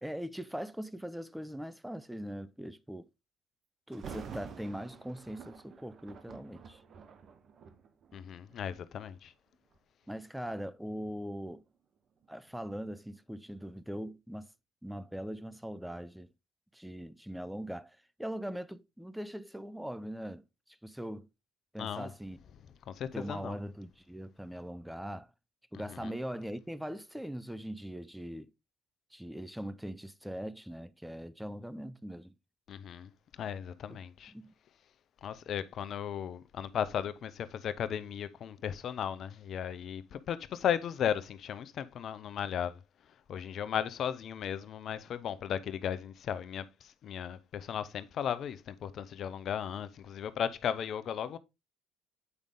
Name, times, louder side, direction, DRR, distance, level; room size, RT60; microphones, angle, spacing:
voice 1, 0.0-3.1 3.9-6.8 10.1-11.6 12.3-14.5 14.8-16.3 16.7-20.5 20.8-21.3 21.7-22.4 23.1-25.3 25.7-28.5 29.1-32.3 33.9-34.0 34.3-34.5, equal, 5° right, 0.6 m, -41 dB
Thunder, 3.9-8.9 9.5-9.8 10.4-13.2 13.6-13.7, right 6 dB, 50° right, 1.0 m, -50 dB
voice 2, 8.1-9.3 21.8-22.1 22.9-23.6 25.9-26.1 32.7-33.1 33.4-34.3 35.2-42.8 43.3-51.4, left 9 dB, 55° left, 0.7 m, -36 dB
8.2 x 5.2 x 3.6 m
hypercardioid pair, 65°, 0 cm